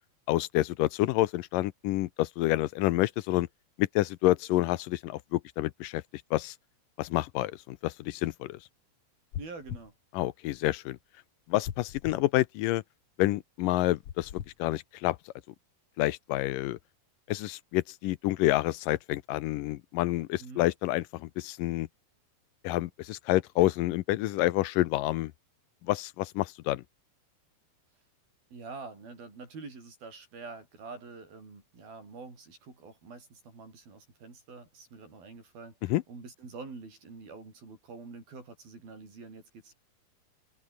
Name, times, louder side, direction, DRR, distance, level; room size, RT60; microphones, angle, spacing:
voice 1, 0.3-3.5 3.8-6.6 7.0-8.6 10.1-11.0 11.5-12.8 13.2-14.3 14.6-15.2 16.0-16.8 17.3-21.9 22.6-25.3 25.8-26.8 35.9-36.0, left 17 dB, 80° left, 2.2 m, -28 dB
sound 1, 9.3-9.9 11.6-12.2 14.0-14.5, left 10 dB, 60° left, 1.6 m, -39 dB
voice 2, 9.4-9.9 20.4-20.7 28.5-39.7, right 4 dB, 90° right, 9.7 m, -46 dB
omnidirectional pair, 4.1 m